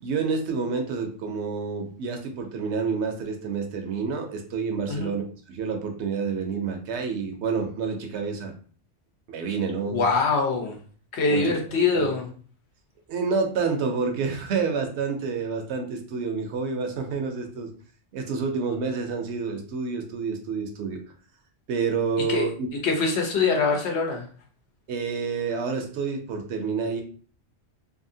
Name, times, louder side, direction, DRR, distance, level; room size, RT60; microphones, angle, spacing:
voice 1, 0.0-5.2 5.5-8.5 9.3-10.1 10.5-10.6 11.3-11.5 11.9-12.1 13.1-17.7 18.1-21.0 21.7-22.7 24.9-27.0, right 5 dB, 75° right, 4 dB, 0.9 m, -28 dB
voice 2, 9.9-10.8 11.1-12.3 22.3-22.5 22.8-24.2, left 4 dB, 75° left, 1 dB, 1.0 m, -23 dB
2.8 x 2.6 x 2.6 m, 0.42 s
omnidirectional pair, 1.2 m